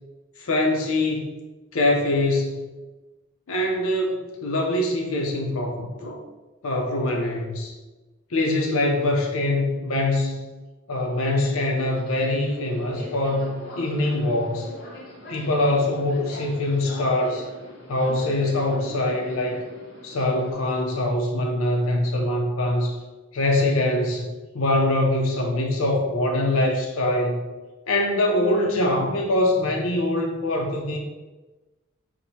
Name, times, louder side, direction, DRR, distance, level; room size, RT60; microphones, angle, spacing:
voice 1, 0.4-1.3 1.7-2.6 3.5-6.2 6.6-7.7 8.3-10.4 10.9-14.7 15.3-17.4 17.9-19.6 20.0-23.0 23.3-24.3 24.5-27.5 27.9-31.0, left 1 dB, 90° left, 0 dB, 0.6 m, -23 dB
Subway metro underground, 11.0-20.5, equal, 50° left, 0.9 m, -42 dB
6.0 x 2.1 x 2.7 m, 1.2 s
head